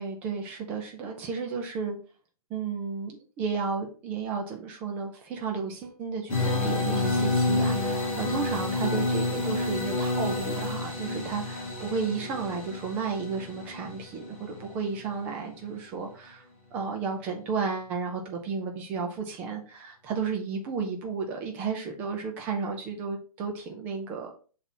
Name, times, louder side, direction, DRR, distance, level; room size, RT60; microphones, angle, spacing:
voice 1, 0.0-2.0 2.5-16.5 16.7-24.3, right 5 dB, 10° right, 2 dB, 0.5 m, -33 dB
sound 1, 6.3-15.1, left 2 dB, 10° left, 2.0 m, -29 dB
5.8 x 4.1 x 4.2 m, 0.38 s
hypercardioid pair, 170°, 19 cm